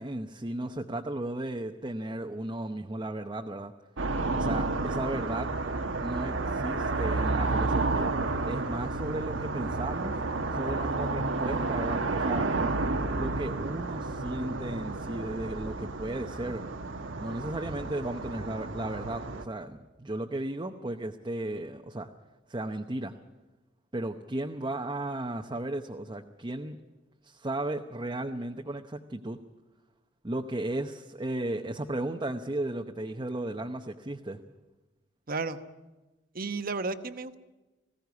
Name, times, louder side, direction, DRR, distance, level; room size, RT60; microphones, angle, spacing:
voice 1, 0.0-3.7 4.3-5.5 6.0-10.2 10.5-12.5 13.2-16.7 17.2-22.1 22.5-23.1 23.9-26.8 27.2-29.4 30.2-34.4, right 1 dB, 25° right, 4 dB, 0.8 m, -35 dB
sound 1, 4.0-19.4, right 3 dB, 85° right, 1.3 m, -31 dB
voice 2, 35.3-35.6 36.3-37.4, right 3 dB, 50° right, 10 dB, 1.1 m, -33 dB
20.0 x 16.0 x 9.5 m, 1.1 s
head